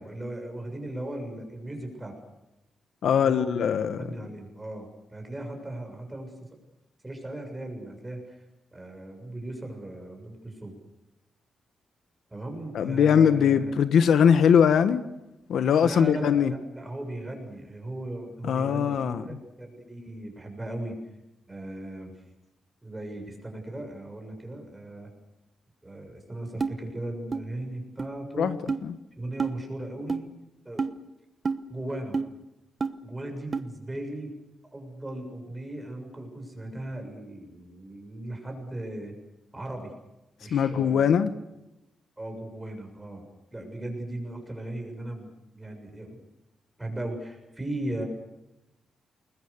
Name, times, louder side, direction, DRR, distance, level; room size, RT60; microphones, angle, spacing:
voice 1, 0.0-2.1 3.2-3.6 4.0-6.3 7.0-8.4 8.7-10.8 12.3-13.7 15.8-21.0 21.5-22.1 22.8-25.1 25.8-28.5 29.2-30.2 30.6-30.8 31.7-32.2 33.0-34.3 34.7-39.1 39.5-39.9 40.4-41.1 42.2-43.2 43.5-46.2 46.8-48.0, right 1 dB, 10° right, 6.8 m, -37 dB
voice 2, 3.0-4.0 12.7-15.0 15.5-16.5 18.4-19.2 28.4-28.6 28.8-28.9 40.5-41.3, left 7 dB, 70° left, 1.3 m, -21 dB
sound 1, 26.6-26.7 27.3-27.4 28.0-28.1 28.7-28.8 29.4-29.5 30.1-30.2 30.8-30.9 31.4-31.6 32.1-32.3 32.8-32.9 33.5-33.6, right 4 dB, 25° right, 1.1 m, -28 dB
29.0 x 21.5 x 6.8 m
wide cardioid pair, 170°, 0 cm